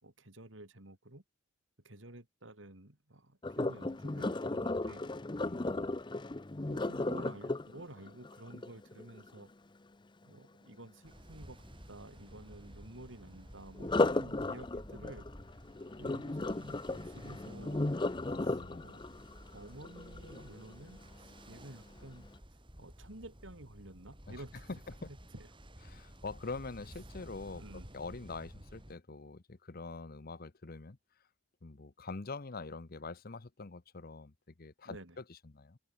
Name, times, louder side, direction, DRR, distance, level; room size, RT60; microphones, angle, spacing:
voice 1, 0.0-1.2 1.8-5.1 6.6-9.5 10.2-11.6 11.9-15.7 16.0-17.9 18.4-19.0 19.5-22.3 22.8-24.6 25.4-25.5 27.6-27.9 34.9-35.2, right 1 dB, 65° right, 3.5 m, -51 dB
Sink (filling or washing), 3.4-9.4 13.8-20.8 21.3-21.6 22.1-22.2, left 2 dB, 25° left, 0.6 m, -35 dB
voice 2, 5.4-6.0 18.2-18.9 24.3-24.4 24.7-25.1 25.8-31.0 31.6-35.8, left 3 dB, 45° left, 0.9 m, -45 dB
Ocean, 11.0-29.0, equal, 25° right, 7.0 m, -53 dB
head